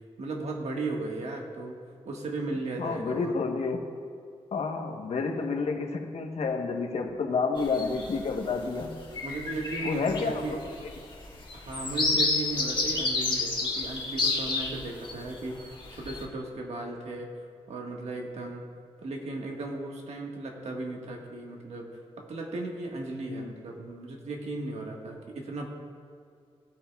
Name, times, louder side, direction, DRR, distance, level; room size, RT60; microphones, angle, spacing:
voice 1, 0.2-1.8 2.0-3.3 9.2-10.6 11.5-17.3 17.7-18.6 19.0-21.9 22.2-25.7, right 2 dB, 80° right, 0 dB, 1.5 m, -36 dB
voice 2, 2.8-3.8 4.5-8.9 9.8-10.7 23.3-23.5, left 4 dB, 75° left, 4 dB, 1.0 m, -30 dB
sound 1, 7.6-8.2 8.7-8.8 9.1-15.1 15.6-16.2, left 3 dB, 45° left, 1.6 m, -29 dB
17.0 x 8.7 x 2.3 m, 2.4 s
wide cardioid pair, 155°, 11 cm